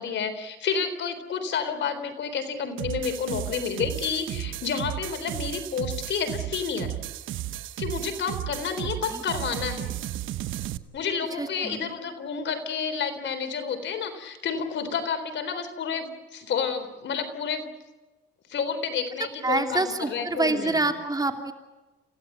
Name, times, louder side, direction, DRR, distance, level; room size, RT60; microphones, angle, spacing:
voice 1, 0.0-6.9 7.8-10.0 10.9-17.7 18.5-20.8, left 6 dB, 65° left, 9 dB, 3.9 m, -30 dB
sound 1, 2.8-10.8, right 13 dB, 80° right, 1.0 m, -34 dB
voice 2, 11.3-11.8 19.4-21.5, right 2 dB, 20° right, 5 dB, 2.9 m, -26 dB
29.0 x 16.0 x 9.2 m, 1.1 s
cardioid pair, 90°, 20 cm